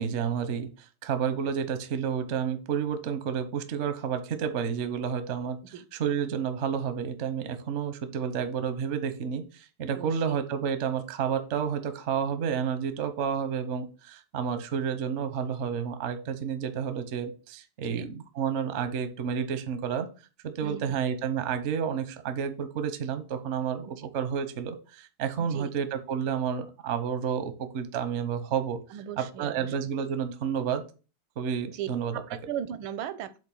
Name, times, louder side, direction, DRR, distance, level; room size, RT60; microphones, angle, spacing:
voice 1, 0.0-5.6 6.0-20.1 20.4-28.8 29.2-30.8 31.4-32.1, right 7 dB, 60° right, 10 dB, 0.7 m, -30 dB
voice 2, 9.9-10.4 17.8-18.1 20.6-20.8 25.4-25.7 28.9-29.7 31.7-33.4, right 9 dB, 80° right, 13 dB, 1.5 m, -37 dB
7.9 x 2.7 x 5.4 m, 0.34 s
omnidirectional pair, 2.2 m